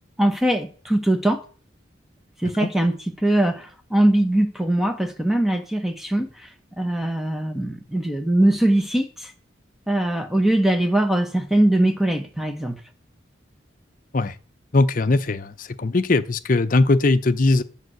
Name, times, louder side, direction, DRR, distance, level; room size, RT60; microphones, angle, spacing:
voice 1, 0.2-1.4 2.4-6.5 6.8-9.3 9.9-12.8, right 1 dB, ahead, 1.1 m, -21 dB
voice 2, 14.7-17.6, left 2 dB, 45° left, 0.6 m, -20 dB
10.5 x 5.6 x 7.8 m
head